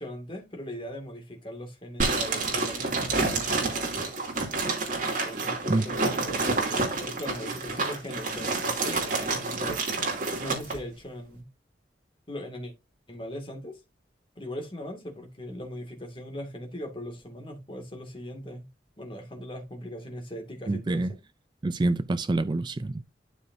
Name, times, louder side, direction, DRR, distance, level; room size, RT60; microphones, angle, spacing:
voice 1, 0.0-4.1 5.2-10.0 10.4-11.5 12.3-12.7 13.1-13.8 14.4-18.7 19.0-21.1, equal, 30° left, 2.2 m, -39 dB
sound 1, 2.0-10.8, right 3 dB, 45° right, 2.6 m, -28 dB
voice 2, 20.7-21.1 21.6-23.0, right 2 dB, 25° right, 0.4 m, -26 dB
12.0 x 4.8 x 2.7 m
head